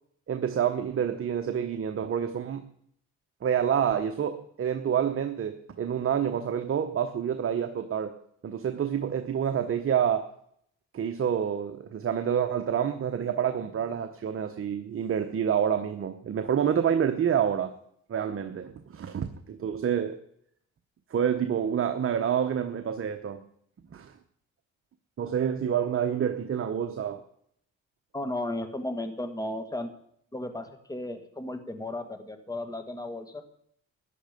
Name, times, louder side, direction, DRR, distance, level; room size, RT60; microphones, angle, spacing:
voice 1, 0.3-2.6 3.4-8.2 8.4-10.3 10.9-17.7 18.1-20.2 21.1-23.4 23.9-24.1 25.2-27.2, right 8 dB, 45° right, 7 dB, 1.1 m, -28 dB
voice 2, 28.1-29.9 30.3-33.4, left 1 dB, 10° left, 7 dB, 1.8 m, -34 dB
14.0 x 10.5 x 5.2 m, 0.68 s
cardioid pair, 90°, 30 cm